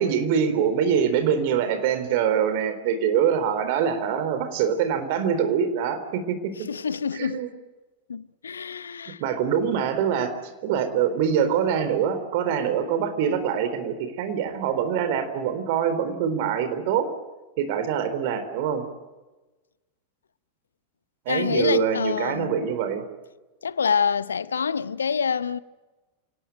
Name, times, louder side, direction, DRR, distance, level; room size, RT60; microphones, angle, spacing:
voice 1, 0.0-6.5 7.1-7.5 9.2-17.1 17.6-18.9 21.3-23.0, right 8 dB, 50° right, 3.9 m, -24 dB
voice 2, 6.7-7.4 8.1-9.2 21.3-22.6 23.6-25.6, left 6 dB, 75° left, 0.8 m, -26 dB
28.0 x 18.5 x 9.0 m
figure-of-eight pair, 90°, 0 cm